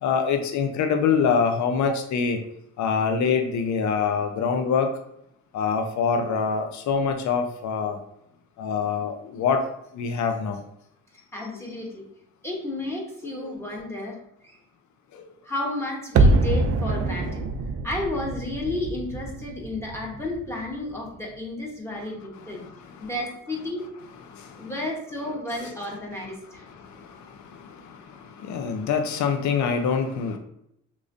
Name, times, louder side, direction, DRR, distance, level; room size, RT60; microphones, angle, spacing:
voice 1, 0.0-2.4 2.8-4.9 5.5-8.0 8.6-9.6 9.9-10.6 13.3-13.5 15.1-15.2 22.6-23.1 24.3-24.7 26.7-30.4, left 6 dB, 70° left, 5 dB, 0.6 m, -25 dB
voice 2, 11.3-12.0 12.4-14.2 14.4-14.6 15.4-17.4 17.8-22.6 23.0-23.9 24.5-26.6, left 2 dB, 10° left, -2 dB, 1.2 m, -32 dB
sound 1, 16.2-21.1 21.4-21.5, right 3 dB, 50° right, 0.5 m, -24 dB
3.7 x 3.1 x 2.6 m, 0.77 s
cardioid pair, 90°, 30 cm